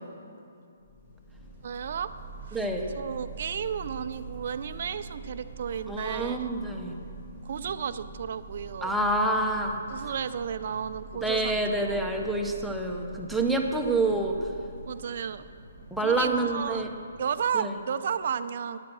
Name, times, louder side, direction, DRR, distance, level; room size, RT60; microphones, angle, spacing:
sound 1, 0.8-17.4, right 4 dB, 45° left, 2.4 m, -44 dB
voice 1, 1.6-2.1 2.5-2.6 2.9-6.5 7.4-8.9 9.9-11.5 11.8-12.0 14.9-15.4 16.0-16.9 17.2-18.8, right 7 dB, 55° right, 12 dB, 0.6 m, -33 dB
voice 2, 2.5-2.9 5.9-6.9 8.8-9.8 11.2-14.4 15.9-16.9 17.5-17.7, right 2 dB, ahead, 0 dB, 1.0 m, -27 dB
12.5 x 9.8 x 6.2 m, 2.5 s
hypercardioid pair, 150°, 0 cm